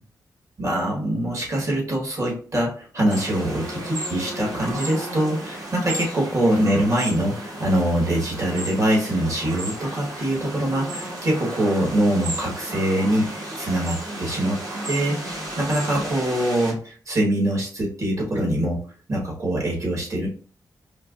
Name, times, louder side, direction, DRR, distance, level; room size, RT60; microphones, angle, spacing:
voice 1, 0.6-18.8 19.1-20.3, right 1 dB, 45° right, -3 dB, 1.6 m, -24 dB
sound 1, 3.1-16.7, right 1 dB, 60° right, 1.4 m, -33 dB
4.5 x 3.0 x 2.5 m, 0.41 s
wide cardioid pair, 135°, 7 cm